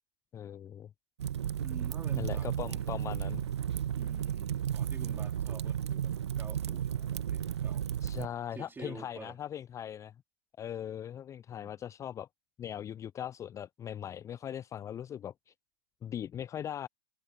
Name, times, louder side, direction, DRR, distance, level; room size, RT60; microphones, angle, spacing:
voice 1, 0.3-0.9 2.2-3.5 8.0-10.1 10.6-12.3 12.6-15.5 16.0-16.9, left 10 dB, 20° left, 0.5 m, -40 dB
Fire, 1.2-8.3, right 9 dB, 75° right, 0.5 m, -33 dB
voice 2, 1.6-3.1 3.9-7.9 8.2-9.4 11.6-11.8, right 4 dB, 15° right, 3.3 m, -50 dB
figure-of-eight pair, 95°, 14 cm